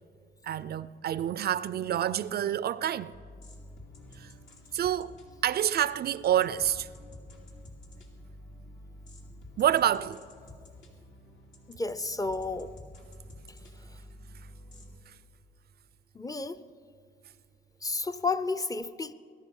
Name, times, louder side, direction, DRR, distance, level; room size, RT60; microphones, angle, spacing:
voice 1, 0.4-3.2 4.2-4.3 4.7-5.2 5.4-6.9 9.6-10.2, right 10 dB, 55° right, 0.4 m, -28 dB
sound 1, 3.1-15.0, left 1 dB, 70° left, 2.9 m, -50 dB
voice 2, 11.7-12.7 13.5-13.6 16.1-16.6 17.8-19.1, left 3 dB, 20° left, 0.6 m, -32 dB
20.5 x 12.0 x 5.4 m
cardioid pair, 90°, 20 cm